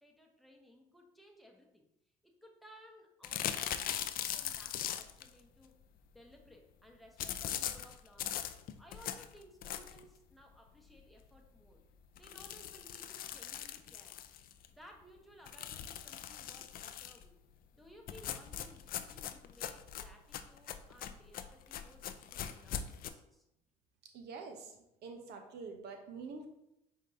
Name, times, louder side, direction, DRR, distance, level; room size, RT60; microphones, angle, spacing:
voice 1, 0.0-1.9 2.2-5.8 6.1-8.4 8.8-11.8 12.1-14.2 14.7-17.4 17.7-23.5, equal, ahead, 1 dB, 1.0 m, -59 dB
sound 1, 3.2-5.3 7.2-10.1 10.6-10.7 11.0-11.1 11.4-11.5 12.1-14.7 15.5-17.2 18.1-23.1, left 10 dB, 50° left, 0.4 m, -40 dB
voice 2, 24.1-26.5, right 4 dB, 65° right, 4 dB, 0.9 m, -46 dB
5.1 x 3.7 x 2.7 m, 0.84 s
supercardioid pair, 70°, 18 cm